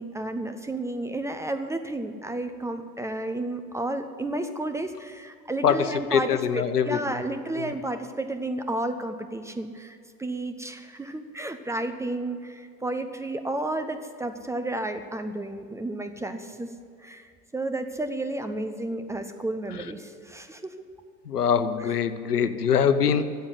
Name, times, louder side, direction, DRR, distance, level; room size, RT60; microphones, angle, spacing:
voice 1, 0.0-16.7 17.0-20.6 21.8-22.0, right 2 dB, 5° right, 7 dB, 0.5 m, -32 dB
voice 2, 5.6-7.2 7.6-7.7 21.3-23.4, left 7 dB, 80° left, 12 dB, 1.0 m, -23 dB
13.5 x 7.9 x 9.8 m, 2.3 s
figure-of-eight pair, 90°, 46 cm